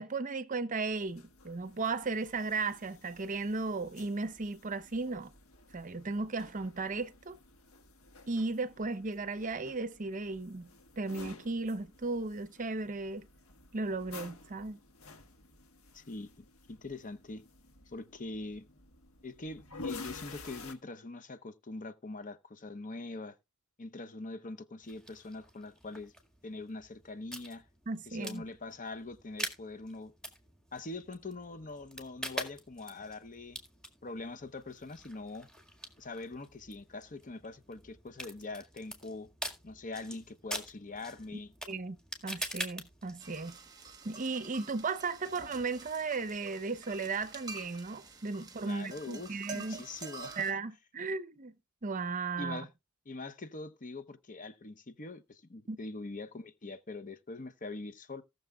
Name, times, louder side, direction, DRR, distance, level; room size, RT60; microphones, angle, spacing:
voice 1, 0.0-5.3 5.7-7.4 8.3-10.7 11.0-13.3 13.7-14.8 27.9-28.4 41.7-42.0 42.2-43.6 44.0-49.8 50.4-51.5 51.8-52.7 55.7-55.8, right 3 dB, 35° right, 0.7 m, -35 dB
sound 1, 0.9-20.7, left 3 dB, 70° left, 1.6 m, -51 dB
voice 2, 15.9-17.4 17.9-18.6 19.2-23.4 23.8-26.1 26.4-27.6 28.1-30.1 30.7-33.6 34.0-35.5 36.0-39.3 39.6-41.5 48.6-50.4 52.4-52.7 53.1-58.2, left 3 dB, 35° left, 0.8 m, -43 dB
sound 2, 24.8-43.5, right 1 dB, 5° left, 1.9 m, -45 dB
sound 3, 43.2-50.5, right 4 dB, 15° right, 1.2 m, -48 dB
18.0 x 6.8 x 2.3 m
head